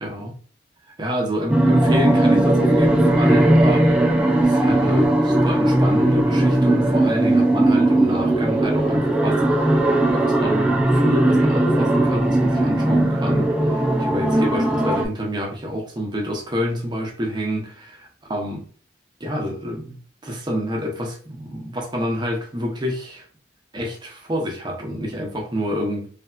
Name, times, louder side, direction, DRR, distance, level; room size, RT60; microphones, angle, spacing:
voice 1, 0.0-0.3 1.0-4.0 4.4-18.6 19.2-23.2 23.7-26.1, equal, 25° right, 0.7 m, -28 dB
sound 1, 1.5-15.1, right 1 dB, 5° right, 0.3 m, -18 dB
3.3 x 2.7 x 2.3 m
head